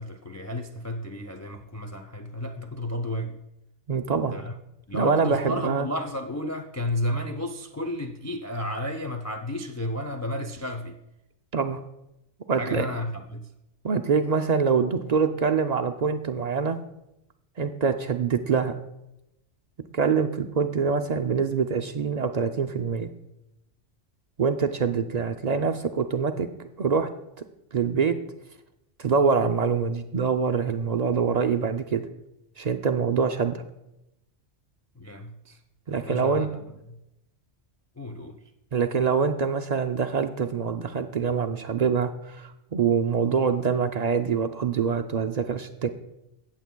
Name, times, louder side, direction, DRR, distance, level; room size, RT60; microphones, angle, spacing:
voice 1, 0.0-3.4 4.3-4.5 4.9-11.0 12.6-13.5 34.9-35.6 36.0-37.0 38.0-38.4, left 1 dB, 25° left, 3 dB, 0.3 m, -32 dB
voice 2, 3.9-4.3 4.9-5.9 11.5-11.8 12.5-12.9 13.8-16.8 17.6-18.8 19.9-23.1 24.4-26.5 26.8-27.1 27.7-28.2 29.0-32.0 32.6-33.6 35.9-36.5 38.7-45.9, right 5 dB, 60° right, 6 dB, 0.4 m, -25 dB
17.5 x 7.4 x 2.2 m, 0.88 s
omnidirectional pair, 1.2 m